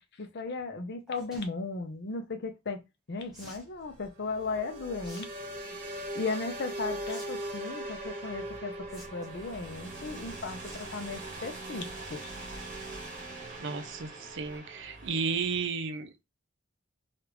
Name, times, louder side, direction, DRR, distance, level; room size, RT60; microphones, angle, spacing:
voice 1, 0.2-2.8 3.1-5.3 5.7-5.8 6.1-12.3, left 3 dB, 55° left, 0.6 m, -36 dB
sound 1, 1.1-1.5 3.3-3.7 5.0-5.3 5.6-6.0 7.1-7.2 7.5-7.6 8.9-9.4 10.6-10.9 11.3-11.5 11.9-12.0 12.2-12.3, equal, ahead, 1.0 m, -50 dB
sound 2, 3.2-15.7, right 1 dB, 40° right, 1.0 m, -41 dB
voice 2, 13.6-16.2, right 5 dB, 60° right, 0.5 m, -33 dB
3.4 x 2.4 x 3.0 m
head